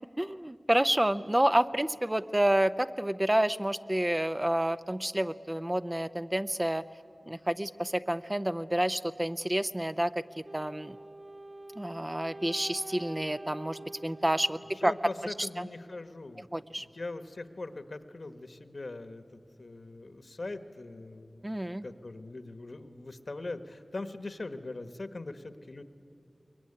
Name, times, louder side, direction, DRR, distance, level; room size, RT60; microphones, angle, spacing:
voice 1, 0.2-6.8 7.3-11.0 11.8-14.9 15.2-15.7 16.5-16.9 21.4-21.8, right 1 dB, 20° right, 11 dB, 0.6 m, -29 dB
Wind instrument woodwind instrument, 10.4-15.5, right 1 dB, 55° right, 1.3 m, -46 dB
voice 2, 14.7-16.5 16.8-25.8, left 2 dB, 65° left, 9 dB, 1.3 m, -41 dB
23.0 x 22.0 x 9.8 m, 2.6 s
wide cardioid pair, 45°, 0 cm